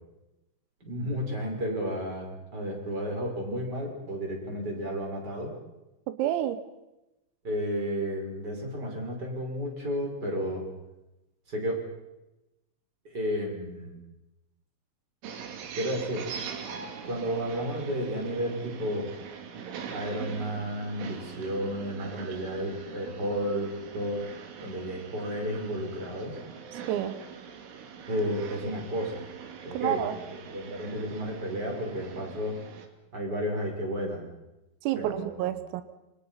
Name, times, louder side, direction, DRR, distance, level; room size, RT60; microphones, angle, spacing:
voice 1, 0.8-5.5 7.4-10.6 11.5-11.9 13.0-14.0 15.7-16.3 17.0-19.1 19.9-24.3 24.6-26.4 28.1-29.2 29.6-30.0 30.5-32.6 33.1-34.3 35.0-35.3, equal, 20° right, 1 dB, 6.0 m, -32 dB
voice 2, 6.2-6.6 26.9-27.2 29.7-30.2 34.8-35.8, right 12 dB, 85° right, 12 dB, 3.8 m, -29 dB
sound 1, 15.2-32.9, right 7 dB, 70° right, 4.6 m, -42 dB
28.0 x 25.5 x 5.8 m, 0.95 s
omnidirectional pair, 5.9 m